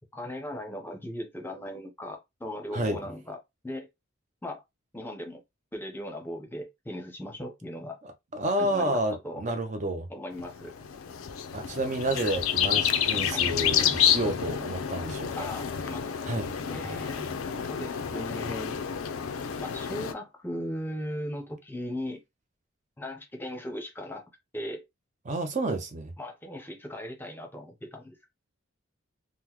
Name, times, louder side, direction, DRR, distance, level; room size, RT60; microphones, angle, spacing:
voice 1, 0.1-3.4 3.6-3.9 4.4-4.6 4.9-5.4 5.7-8.0 8.6-9.4 10.1-10.7 13.3-13.5 15.4-16.2 16.7-17.4 17.7-18.8 19.6-22.2 23.0-24.2 24.5-24.8 26.2-28.3, left 1 dB, 10° left, 0.6 m, -38 dB
voice 2, 8.3-10.1 11.5-15.5 16.2-16.5 16.8-17.0 25.3-26.1, right 1 dB, 35° right, 0.5 m, -30 dB
sound 1, 10.4-20.1, left 9 dB, 90° left, 0.5 m, -29 dB
3.7 x 2.1 x 2.9 m
head